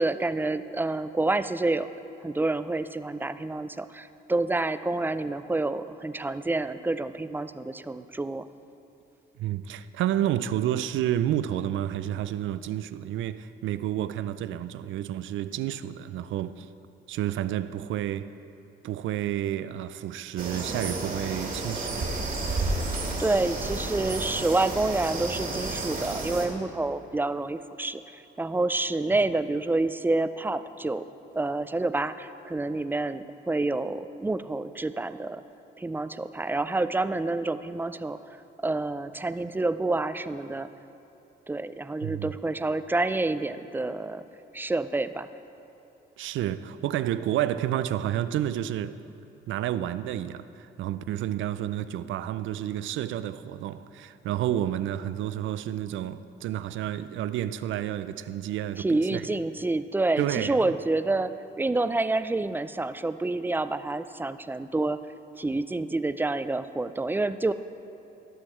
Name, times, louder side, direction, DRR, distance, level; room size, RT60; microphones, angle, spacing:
voice 1, 0.0-1.9 2.2-8.5 23.2-31.0 31.3-35.4 35.8-40.7 41.5-44.2 44.5-45.3 58.8-65.0 65.3-67.5, right 2 dB, 10° right, 0.3 m, -28 dB
voice 2, 9.4-16.7 17.1-18.4 18.8-22.1 42.0-42.3 46.2-49.0 49.5-59.3 60.2-60.6, right 12 dB, 75° right, 0.4 m, -30 dB
sound 1, 20.4-26.5, right 2 dB, 45° right, 2.0 m, -31 dB
17.0 x 6.3 x 4.4 m
cardioid pair, 90°, 20 cm